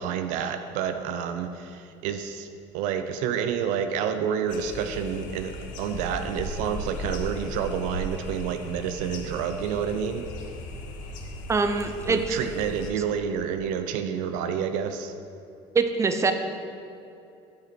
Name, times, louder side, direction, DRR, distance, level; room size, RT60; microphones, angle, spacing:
voice 1, 0.0-2.5 2.7-5.5 5.8-10.2 12.1-15.1, right 7 dB, 75° right, 8 dB, 0.5 m, -29 dB
sound 1, 4.5-12.9, left 1 dB, 75° left, 0.9 m, -37 dB
voice 2, 11.5-12.4 15.7-16.3, right 4 dB, 20° right, 7 dB, 0.6 m, -23 dB
9.3 x 5.1 x 4.4 m, 2.7 s
supercardioid pair, 90°, 13 cm